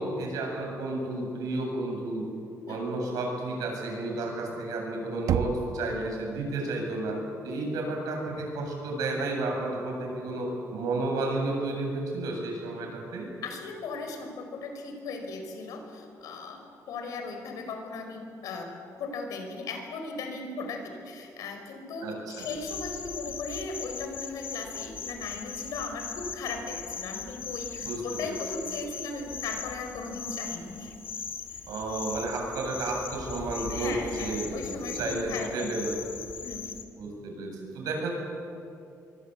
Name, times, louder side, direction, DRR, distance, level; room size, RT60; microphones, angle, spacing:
voice 1, 0.0-2.3 2.7-7.2 7.4-13.3 22.0-22.5 27.8-28.4 31.7-35.9 37.0-38.1, right 2 dB, 85° right, 1 dB, 7.9 m, -32 dB
Knock, 5.3-6.2, right 9 dB, 65° right, 1.0 m, -30 dB
voice 2, 13.4-16.6 16.9-18.7 19.0-30.9 31.5-31.6 33.7-35.7 36.4-36.7, left 3 dB, 75° left, 4 dB, 5.4 m, -37 dB
sound 1, 22.4-36.8, left 6 dB, 35° left, 1.7 m, -39 dB
26.0 x 23.0 x 8.5 m, 2.6 s
cardioid pair, 170°, 6 cm